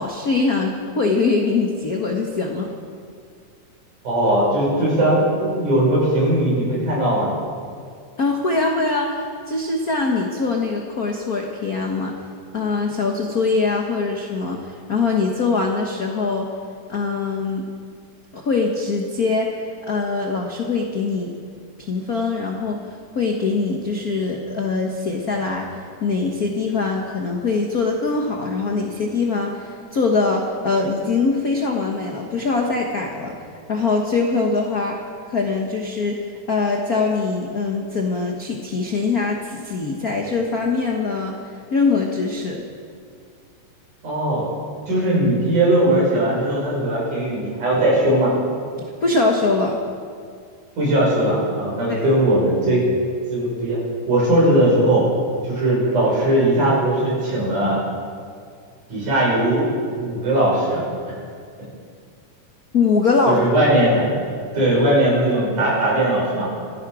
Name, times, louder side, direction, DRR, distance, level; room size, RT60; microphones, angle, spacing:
voice 1, 0.0-2.7 8.2-9.1 9.5-12.2 12.5-16.5 16.9-17.7 18.3-19.5 19.9-21.3 21.9-22.8 23.1-25.8 26.0-33.3 33.7-35.0 35.3-41.4 41.7-42.6 48.8-49.8 51.9-52.1 62.7-63.4, left 4 dB, 60° left, 1 dB, 0.9 m, -22 dB
voice 2, 4.0-7.3 44.0-44.5 44.9-48.3 50.8-52.8 53.3-53.8 54.1-55.1 55.4-57.8 58.9-60.8 63.3-64.1 64.5-66.5, right 1 dB, 80° right, -5 dB, 7.2 m, -19 dB
26.0 x 11.0 x 4.9 m, 2.2 s
omnidirectional pair, 3.5 m